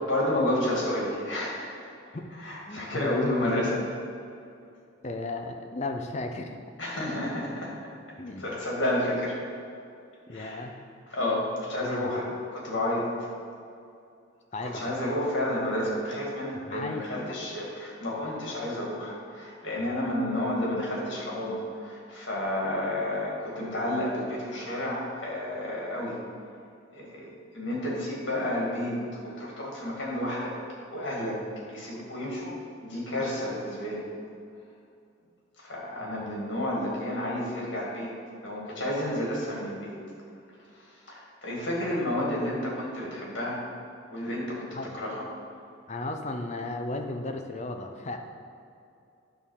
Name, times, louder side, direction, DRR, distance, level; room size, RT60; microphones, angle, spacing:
voice 1, 0.1-1.7 2.3-3.8 6.8-7.7 8.4-9.4 10.3-10.6 11.1-13.1 14.6-26.2 26.9-30.5 30.9-31.4 31.7-32.5 32.8-34.0 35.6-38.1 38.4-39.9 40.7-43.6 44.1-44.7 44.9-45.2, left 1 dB, 60° left, -4 dB, 2.2 m, -31 dB
voice 2, 2.7-3.8 5.0-6.6 8.2-8.5 10.3-10.7 11.8-12.3 14.5-15.1 16.7-17.4 19.8-20.0 36.0-36.3 44.7-45.0 45.9-48.2, left 2 dB, 35° left, 5 dB, 0.5 m, -35 dB
9.6 x 3.7 x 6.4 m, 2.5 s
head